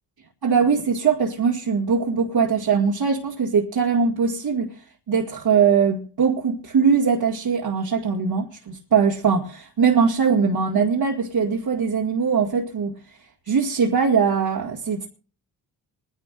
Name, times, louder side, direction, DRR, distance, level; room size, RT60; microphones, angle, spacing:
voice 1, 0.4-4.7 5.1-13.0 13.5-15.1, right 6 dB, 50° right, 2.2 m, -21 dB
27.0 x 11.0 x 2.5 m
supercardioid pair, 50°, 46 cm